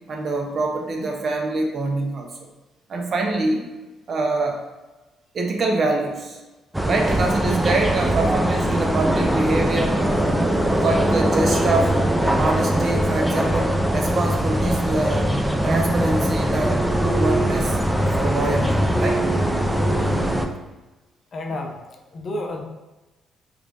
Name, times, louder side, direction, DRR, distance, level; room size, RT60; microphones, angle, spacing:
voice 1, 0.1-2.5 2.9-3.6 4.1-4.6 5.3-6.4 6.8-10.4 10.7-12.0 12.4-15.3 15.6-19.2 21.5-21.6, right 2 dB, 50° right, 1 dB, 0.6 m, -25 dB
sound 1, 6.7-20.5, right 1 dB, 5° right, 0.3 m, -21 dB
voice 2, 19.9-20.3 21.3-22.6, left 2 dB, 45° left, 2 dB, 0.5 m, -31 dB
3.6 x 3.1 x 2.5 m, 1.1 s
cardioid pair, 100°, 0 cm